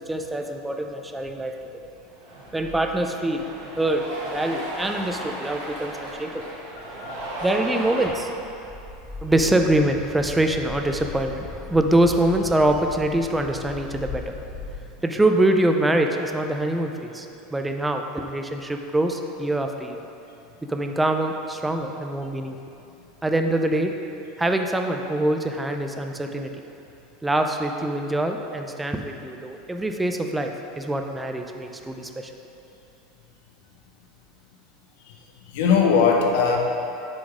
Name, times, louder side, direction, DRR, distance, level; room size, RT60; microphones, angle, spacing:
voice 1, 0.1-1.5 2.5-3.5 3.8-6.5 7.4-8.3 9.2-14.4 15.0-20.0 20.7-22.6 23.2-23.9 24.4-26.5 27.2-32.3, right 1 dB, 5° right, 4 dB, 0.4 m, -24 dB
Cheering, 2.0-8.1, right 1 dB, 80° right, 1.5 m, -35 dB
sound 1, 2.6-14.7, left 4 dB, 40° right, 1.3 m, -40 dB
voice 2, 7.0-7.3 35.1-35.2 35.4-36.6, left 5 dB, 70° left, 1 dB, 0.8 m, -20 dB
6.1 x 3.9 x 4.8 m, 2.8 s
supercardioid pair, 145°, 0 cm